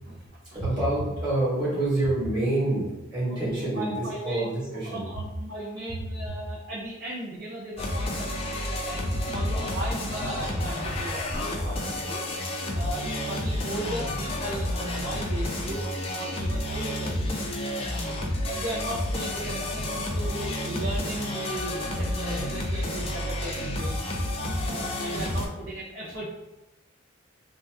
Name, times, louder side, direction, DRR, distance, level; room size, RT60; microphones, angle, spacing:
voice 1, 0.5-5.0 15.2-15.3 17.7-17.9 21.8-21.9, right 1 dB, 15° right, -12 dB, 1.3 m, -27 dB
voice 2, 3.3-4.5 4.8-12.2 12.7-15.9 16.1-17.5 18.3-24.1 24.5-26.3, right 1 dB, 55° right, -7 dB, 0.6 m, -37 dB
sound 1, 7.8-25.5, left 1 dB, 30° left, 0.4 m, -30 dB
2.8 x 2.3 x 3.3 m, 1.0 s
head